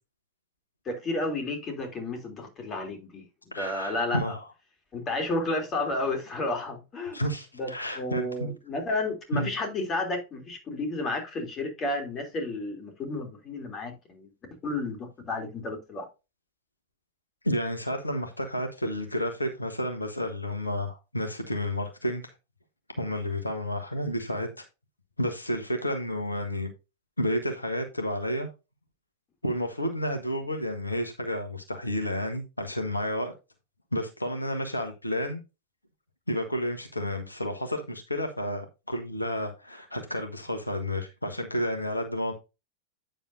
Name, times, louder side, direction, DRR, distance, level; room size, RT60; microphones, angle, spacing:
voice 1, 0.8-3.2 3.6-4.4 4.9-7.2 7.5-14.3 14.6-16.0, left 2 dB, 25° left, 3.2 m, -32 dB
voice 2, 3.5-4.4 7.1-8.5 9.3-9.5 17.4-22.3 23.0-24.6 25.2-26.7 27.2-28.5 29.4-33.3 33.9-35.4 36.3-42.3, equal, 85° left, 1.3 m, -31 dB
9.1 x 7.1 x 2.7 m
figure-of-eight pair, 90°, 0 cm